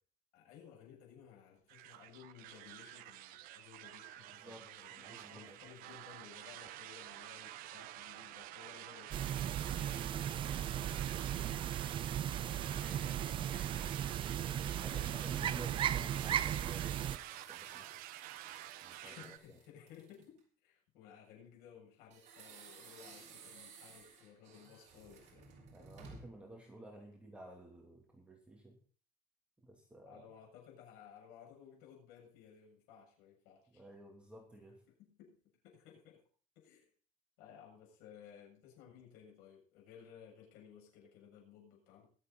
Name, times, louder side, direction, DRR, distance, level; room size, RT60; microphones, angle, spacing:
voice 1, 0.3-14.1 14.6-15.6 16.4-16.6 19.0-25.5 30.1-33.8 35.0-35.4 35.6-36.2 36.6-36.9 37.4-42.1, left 8 dB, 90° left, 0 dB, 7.3 m, -58 dB
sound 1, 1.7-19.4, right 14 dB, 70° right, 1.0 m, -50 dB
voice 2, 4.3-4.6 5.0-5.6 14.4-18.0 18.8-19.6 25.7-28.8 29.6-30.3 33.7-34.8, right 2 dB, 5° right, 0 dB, 2.6 m, -54 dB
sound 2, 9.1-17.2, right 10 dB, 35° right, 0.5 m, -36 dB
sound 3, 16.1-20.4 22.1-26.5, right 5 dB, 50° right, 5.1 m, -56 dB
22.0 x 7.8 x 4.1 m, 0.42 s
cardioid pair, 155°, 15 cm